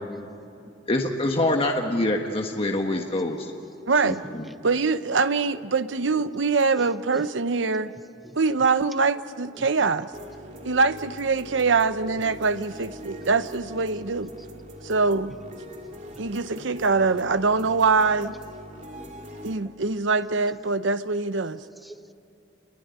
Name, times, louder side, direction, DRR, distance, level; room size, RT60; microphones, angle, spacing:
voice 1, 0.9-3.5 4.0-4.4, left 1 dB, 30° left, 2 dB, 1.5 m, -25 dB
voice 2, 3.9-4.2 4.6-7.9 8.4-10.1 10.6-14.3 14.8-15.3 16.2-18.3 19.4-21.6, right 4 dB, 85° right, 12 dB, 0.8 m, -23 dB
voice 3, 6.8-7.3 7.9-8.4 9.5-9.7 10.6-10.7 12.3-12.4 13.4-13.5 21.8-22.1, equal, ahead, 10 dB, 0.7 m, -46 dB
sound 1, 10.1-19.6, equal, 45° right, 2.9 m, -42 dB
29.0 x 21.0 x 9.5 m, 2.7 s
head